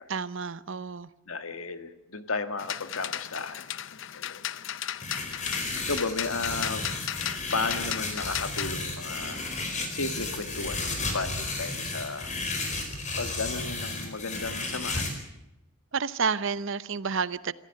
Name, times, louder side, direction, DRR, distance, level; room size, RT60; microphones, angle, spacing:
voice 1, 0.1-1.1 15.9-17.5, right 5 dB, 65° right, 17 dB, 0.7 m, -30 dB
voice 2, 1.3-3.8 4.1-4.4 5.8-6.9 7.5-9.4 9.9-12.3 13.1-15.1, left 3 dB, 80° left, 9 dB, 1.7 m, -34 dB
sound 1, 2.6-8.7, left 11 dB, 60° left, 0.7 m, -36 dB
sound 2, 5.0-15.1, left 3 dB, 35° left, 4.4 m, -33 dB
25.5 x 14.5 x 7.7 m, 0.93 s
head